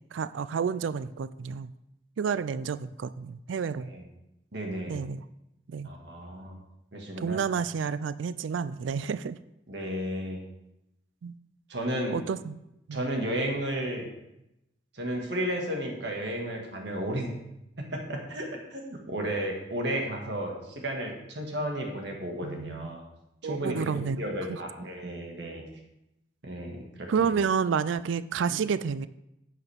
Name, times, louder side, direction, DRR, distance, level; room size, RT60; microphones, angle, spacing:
voice 1, 0.1-1.7 2.2-3.9 4.9-5.2 5.7-5.9 7.2-9.4 11.2-11.3 12.1-12.6 12.9-13.0 22.4-23.0 23.4-24.6 27.1-29.1, right 6 dB, 80° right, 15 dB, 0.4 m, -30 dB
voice 2, 4.5-5.0 5.8-6.6 6.9-7.4 9.7-10.4 11.7-12.2 12.9-14.1 14.9-17.3 17.8-23.0 23.4-23.9 24.2-25.6 26.4-27.3, right 1 dB, 65° right, 1 dB, 1.8 m, -33 dB
11.0 x 8.3 x 3.5 m, 0.87 s
head